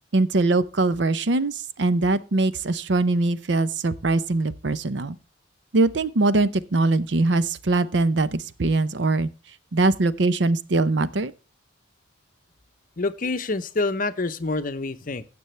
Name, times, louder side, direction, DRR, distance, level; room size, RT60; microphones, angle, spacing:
voice 1, 0.1-5.2 5.7-9.3 9.7-11.3, right 2 dB, 65° right, 0.6 m, -22 dB
voice 2, 13.0-15.2, left 3 dB, 45° left, 0.7 m, -27 dB
16.0 x 6.9 x 3.2 m
head